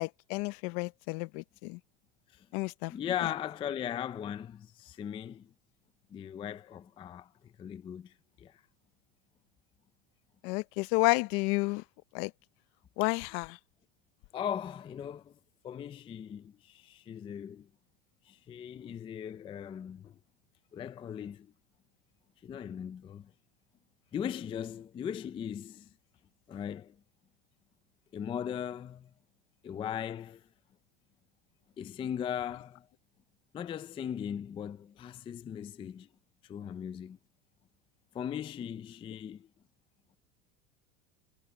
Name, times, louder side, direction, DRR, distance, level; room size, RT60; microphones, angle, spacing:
voice 1, 0.0-1.8 2.5-2.9 10.4-11.8 12.1-12.3 13.0-13.6, left 25 dB, 55° left, 0.7 m, -31 dB
voice 2, 2.9-5.5 6.1-7.3 7.6-8.1 8.4-8.5 14.3-15.3 15.6-17.7 18.3-20.1 20.7-21.5 22.4-23.3 24.1-25.9 26.5-26.9 28.1-29.1 29.6-30.4 31.8-32.8 33.5-36.1 36.5-37.2 38.1-39.5, left 9 dB, 15° left, 0.4 m, -38 dB
supercardioid pair, 140°, 38 cm